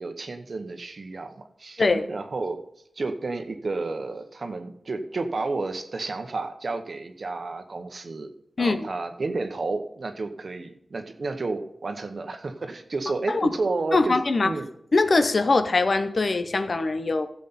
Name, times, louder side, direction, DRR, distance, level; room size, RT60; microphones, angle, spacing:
voice 1, 0.0-1.3 1.6-2.6 3.0-8.3 8.6-14.2 14.4-14.7, right 3 dB, 60° right, 7 dB, 1.1 m, -31 dB
voice 2, 13.9-14.5 14.9-17.3, left 3 dB, 55° left, 10 dB, 0.8 m, -22 dB
14.5 x 7.4 x 4.2 m, 0.72 s
wide cardioid pair, 100°, 0 cm